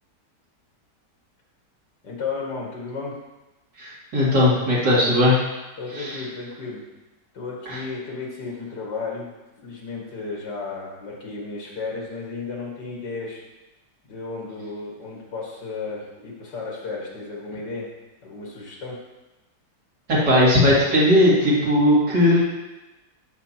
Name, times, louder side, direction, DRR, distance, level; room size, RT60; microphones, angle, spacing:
voice 1, 2.0-3.2 5.8-6.8 7.3-9.3 9.6-13.4 14.1-17.9 18.2-19.0, left 4 dB, 75° left, -3 dB, 2.6 m, -33 dB
voice 2, 3.8-5.4 5.9-6.2 7.7-7.8 20.1-22.4, left 1 dB, 80° right, -8 dB, 3.1 m, -18 dB
13.5 x 5.9 x 2.9 m, 1.0 s
omnidirectional pair, 1.8 m